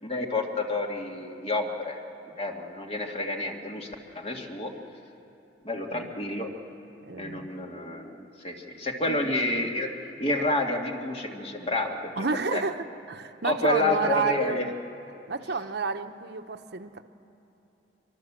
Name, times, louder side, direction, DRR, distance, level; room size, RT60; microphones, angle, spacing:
voice 1, 0.0-2.0 2.4-3.9 4.1-4.7 5.6-6.5 7.2-9.9 10.2-12.1 12.5-12.6 13.4-14.7, left 2 dB, 35° left, 2 dB, 2.1 m, -29 dB
voice 2, 7.1-7.5 9.1-9.2 12.2-14.6 15.3-17.0, right 4 dB, 65° right, 8 dB, 0.9 m, -30 dB
24.0 x 24.0 x 7.5 m, 3.0 s
head